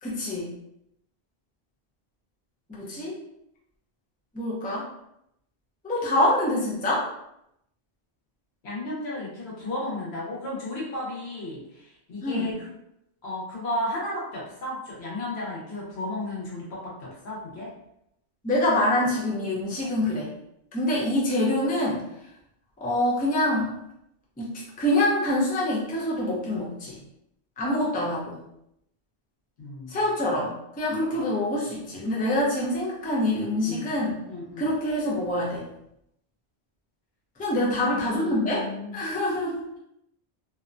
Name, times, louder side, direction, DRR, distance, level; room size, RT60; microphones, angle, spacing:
voice 1, 0.0-0.5 2.7-3.2 4.3-4.9 5.8-7.1 12.2-12.5 18.4-20.3 20.7-22.0 22.8-23.7 24.4-27.0 27.6-28.4 29.9-34.2 34.6-35.7 37.4-38.7 38.9-39.8, left 1 dB, 10° left, -5 dB, 0.4 m, -25 dB
voice 2, 8.6-12.7 13.2-17.7 29.6-30.0 33.6-33.9 34.3-34.7 37.6-38.9, left 1 dB, 80° left, -5 dB, 1.2 m, -34 dB
2.7 x 2.1 x 2.5 m, 0.80 s
omnidirectional pair, 1.1 m